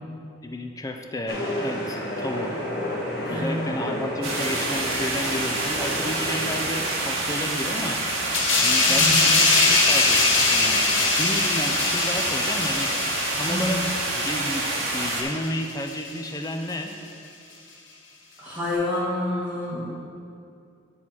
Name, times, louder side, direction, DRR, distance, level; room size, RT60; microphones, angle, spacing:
voice 1, 0.4-2.5 3.3-8.0 8.6-10.9 11.2-12.9 13.3-13.8 14.1-14.6 14.9-16.9, left 1 dB, 15° left, 4 dB, 0.5 m, -32 dB
sound 1, 1.3-6.9, left 1 dB, 55° left, 1.4 m, -31 dB
voice 2, 3.2-3.6 8.9-9.2 13.5-13.7 18.4-19.9, left 1 dB, 10° right, -8 dB, 2.0 m, -28 dB
sound 2, 4.2-15.2, right 2 dB, 85° right, 1.3 m, -27 dB
sound 3, 8.3-15.5 15.9-16.1, left 3 dB, 70° left, 1.0 m, -22 dB
9.5 x 3.8 x 6.0 m, 2.5 s
head